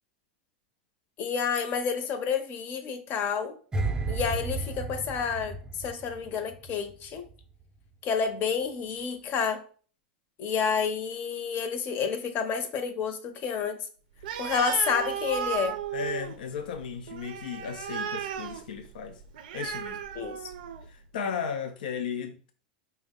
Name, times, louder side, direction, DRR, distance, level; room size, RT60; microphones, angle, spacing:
voice 1, 1.2-3.6 4.1-7.3 8.0-9.6 10.4-13.8 14.4-15.8 20.2-20.5, left 6 dB, 45° left, 0.7 m, -29 dB
sound 1, 3.7-6.9 7.2-7.4, right 3 dB, 15° right, 0.5 m, -33 dB
Animal, 14.2-20.9, right 9 dB, 80° right, 0.4 m, -35 dB
voice 2, 15.9-19.2 19.5-20.0 20.9-22.5, left 6 dB, 85° left, 0.4 m, -35 dB
4.6 x 2.1 x 3.6 m
hypercardioid pair, 115°, 5 cm